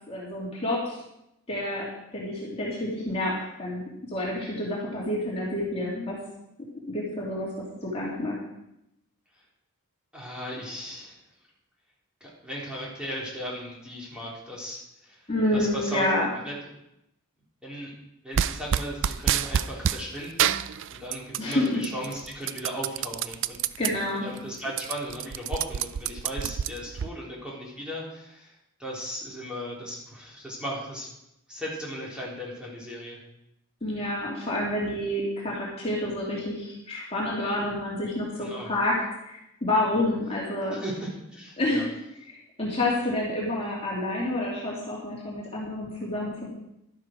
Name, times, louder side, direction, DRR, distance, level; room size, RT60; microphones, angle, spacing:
voice 1, 0.1-1.0 1.5-1.9 2.1-6.2 6.9-7.5 7.8-8.4 15.3-16.3 21.4-21.8 23.8-24.2 33.8-39.0 39.2-40.8 41.6-41.8 42.2-46.5, left 1 dB, 25° left, -5 dB, 2.8 m, -28 dB
voice 2, 10.1-11.1 12.2-15.2 15.5-16.0 16.3-16.5 17.6-17.9 18.2-20.6 20.9-23.6 24.2-28.5 28.8-31.1 31.5-33.2 38.4-38.7 40.7-41.9, equal, 5° right, -5 dB, 3.7 m, -37 dB
sound 1, 18.3-20.0 20.4-21.5 21.8-23.9 24.3-24.4 24.7-27.1, right 9 dB, 55° right, 0.4 m, -27 dB
12.0 x 11.5 x 4.6 m, 0.84 s
head